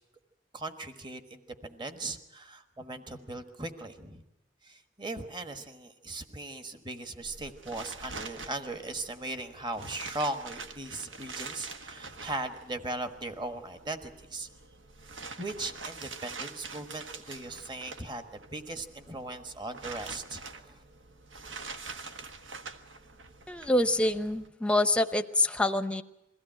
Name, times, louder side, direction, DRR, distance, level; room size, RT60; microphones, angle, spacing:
voice 1, 0.5-4.2 4.6-14.5 15.4-20.8, right 2 dB, 25° right, 8 dB, 1.3 m, -38 dB
sound 1, 7.2-24.5, right 4 dB, 85° right, 1.3 m, -45 dB
voice 2, 23.5-26.0, left 1 dB, 5° left, 9 dB, 0.8 m, -26 dB
22.0 x 16.0 x 8.9 m, 0.90 s
head